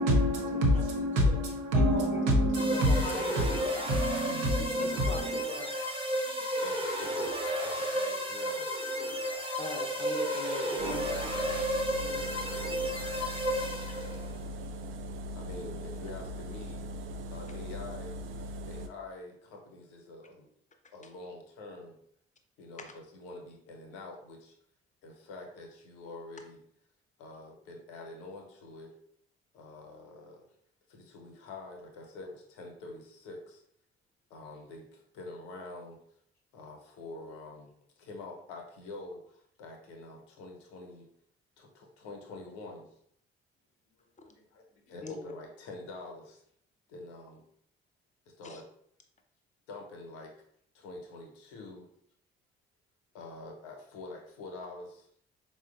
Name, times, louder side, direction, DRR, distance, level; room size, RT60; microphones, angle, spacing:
voice 1, 0.0-3.5 3.8-5.4, equal, 75° right, -1 dB, 0.8 m, -27 dB
voice 2, 1.7-2.4 2.7-3.7 4.5-6.3 9.6-11.1 11.5-11.7 12.0-12.3 12.8-12.9 13.5-13.9 22.8-22.9 44.2-44.3 45.0-45.2 48.4-48.6, left 2 dB, 25° left, 5 dB, 0.6 m, -42 dB
sound 1, 2.5-14.3, equal, 15° right, 0.8 m, -32 dB
voice 3, 6.1-8.7 10.9-11.3 14.3-14.4 15.3-16.9 17.3-18.2 18.7-20.5 20.9-22.0 22.6-24.5 25.0-26.6 27.2-28.9 29.5-30.5 30.9-33.6 34.3-36.0 36.5-41.1 41.6-42.9 44.3-46.4 46.9-47.5 48.4-48.7 49.7-50.3 50.7-51.9 53.1-55.1, left 2 dB, 70° left, 2 dB, 0.8 m, -46 dB
sound 2, 10.8-18.9, equal, 45° right, 0.4 m, -40 dB
4.2 x 2.1 x 2.4 m, 0.67 s
figure-of-eight pair, 45°, 30 cm